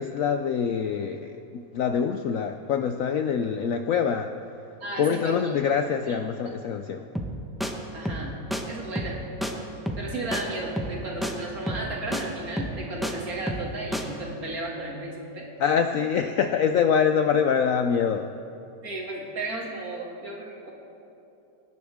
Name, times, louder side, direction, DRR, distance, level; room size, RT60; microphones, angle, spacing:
voice 1, 0.0-4.3 5.0-7.1 15.6-18.3, left 7 dB, 70° left, 7 dB, 0.8 m, -25 dB
voice 2, 4.8-5.4 6.0-6.2 7.9-8.4 8.7-9.2 10.0-15.5 18.8-20.7, right 2 dB, 55° right, -3 dB, 2.7 m, -34 dB
sound 1, 7.1-7.3 7.6-7.7 8.0-8.2 8.5-8.6 8.9-9.2 9.4-9.5 9.8-10.1 10.3-10.4 10.8-11.0 11.2-11.3 11.7-11.9 12.1-12.2 12.6-13.1 13.5-13.7 13.9-14.0, equal, ahead, 0.7 m, -29 dB
24.0 x 11.0 x 3.6 m, 2.8 s
omnidirectional pair, 1.9 m